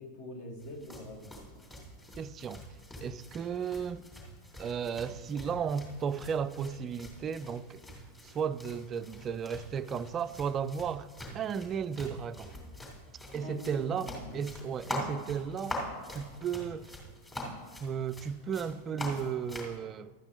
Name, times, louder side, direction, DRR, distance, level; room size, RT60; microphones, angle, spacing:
voice 1, 0.0-1.4 13.4-14.4, left 1 dB, 50° left, 1.7 m, -44 dB
sound 1, 0.6-19.8, left 1 dB, 15° left, 2.7 m, -44 dB
voice 2, 2.2-2.6 3.0-4.1 4.6-7.8 8.2-11.1 11.3-12.5 13.3-15.8 16.1-17.0 17.8-20.1, right 7 dB, 25° right, 0.3 m, -34 dB
12.0 x 8.6 x 3.9 m
figure-of-eight pair, 90°, 0 cm